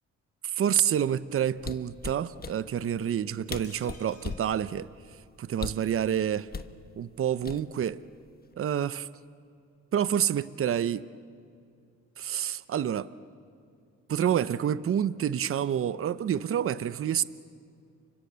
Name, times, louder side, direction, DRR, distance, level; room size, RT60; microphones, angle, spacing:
voice 1, 0.4-4.9 5.4-6.5 7.0-8.0 8.6-9.1 9.9-11.1 12.2-13.1 14.1-17.2, right 9 dB, 45° right, 16 dB, 0.8 m, -28 dB
sound 1, 1.6-2.6 3.2-3.3 3.5-4.5 5.5-5.9 6.5-6.7 7.4-7.9 8.3-8.5, left 5 dB, 30° left, 1.2 m, -37 dB
sound 2, 3.6-5.6 5.9-6.0 6.3-6.4, left 4 dB, 50° left, 3.1 m, -56 dB
29.5 x 24.5 x 6.9 m, 2.3 s
cardioid pair, 90°, 30 cm